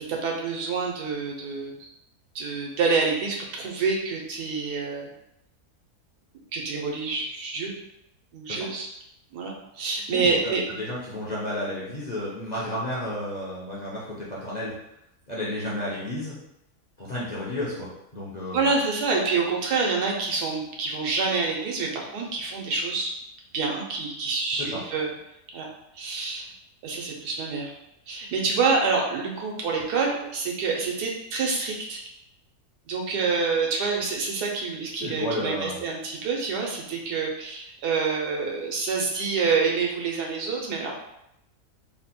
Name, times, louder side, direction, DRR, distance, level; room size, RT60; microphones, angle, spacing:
voice 1, 0.0-1.7 2.3-5.1 6.5-7.7 8.3-8.9 9.3-10.6 18.5-23.1 23.5-25.1 25.5-25.7 25.9-26.4 26.8-27.7 28.1-32.0 32.9-40.9, right 4 dB, 80° right, 0 dB, 1.3 m, -27 dB
voice 2, 10.1-14.7 15.3-16.4 17.0-18.7 24.6-24.8 35.0-35.8, left 1 dB, 40° left, -7 dB, 0.6 m, -32 dB
3.3 x 2.2 x 4.2 m, 0.81 s
omnidirectional pair, 1.7 m